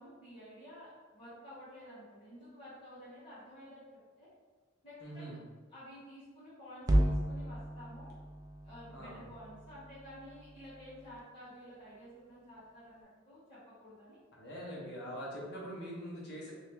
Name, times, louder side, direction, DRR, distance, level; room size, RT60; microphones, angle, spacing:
voice 1, 0.0-3.8 4.2-4.3 4.8-5.4 5.7-8.1 8.6-14.2, equal, 25° left, -13 dB, 1.3 m, -52 dB
voice 2, 5.0-5.4 8.9-9.2 14.4-16.5, equal, 55° left, -4 dB, 1.0 m, -43 dB
sound 1, 6.8-11.2, right 1 dB, 20° right, 0.3 m, -34 dB
2.9 x 2.8 x 3.5 m, 1.4 s
head